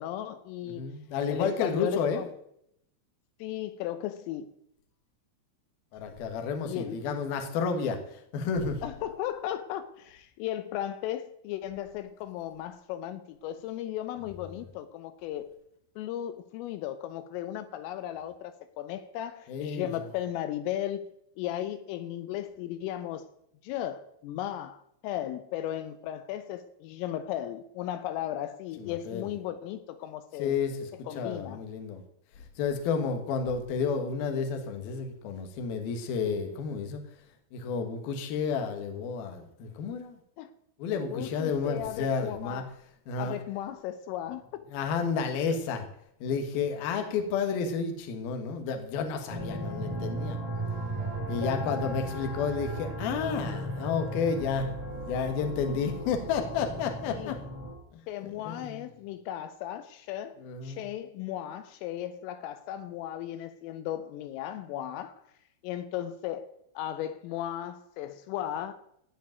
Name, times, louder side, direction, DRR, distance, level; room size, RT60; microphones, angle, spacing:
voice 1, 0.0-0.9 1.3-2.3 3.4-4.5 6.7-7.0 8.8-15.5 16.0-21.0 21.4-23.3 23.6-30.5 31.1-31.6 40.4-40.5 41.1-42.8 43.2-44.6 57.1-57.4 58.1-65.1 65.6-66.5 66.8-68.7, left 12 dB, 80° left, 3.3 m, -36 dB
voice 2, 0.7-2.2 5.9-8.8 19.5-19.9 28.8-29.3 30.4-32.0 32.6-37.0 37.5-40.2 40.8-42.6 43.1-43.4 44.7-45.9 46.2-50.4 51.3-57.4 57.9-58.0 58.4-58.8 60.4-60.8, left 5 dB, 60° left, 2.8 m, -31 dB
sound 1, 49.3-57.7, right 1 dB, 15° right, 1.4 m, -36 dB
15.5 x 5.2 x 9.1 m
omnidirectional pair, 5.9 m